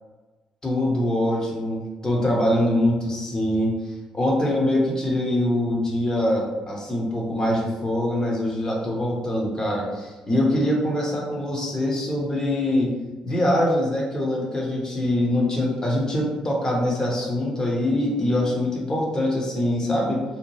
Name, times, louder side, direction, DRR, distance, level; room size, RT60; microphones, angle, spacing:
voice 1, 0.6-3.7 4.1-12.9 13.2-20.2, left 1 dB, 30° left, -2 dB, 0.9 m, -23 dB
2.8 x 2.0 x 3.0 m, 1.2 s
supercardioid pair, 55°, 2 cm